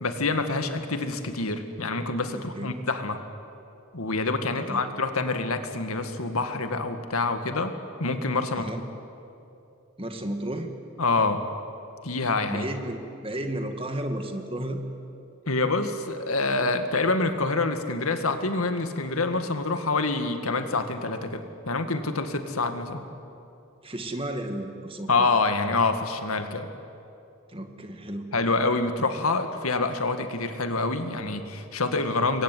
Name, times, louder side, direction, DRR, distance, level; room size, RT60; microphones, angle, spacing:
voice 1, 0.0-3.2 3.9-7.7 8.0-8.7 11.0-11.4 12.0-12.7 15.5-23.0 25.1-26.7 28.3-32.4, left 3 dB, 85° left, 8 dB, 2.1 m, -26 dB
voice 2, 2.3-2.7 4.6-4.8 8.6-8.8 10.0-10.7 12.5-14.8 23.8-25.3 27.5-28.3, right 1 dB, 25° right, 5 dB, 2.0 m, -33 dB
27.0 x 22.5 x 9.4 m, 2.7 s
head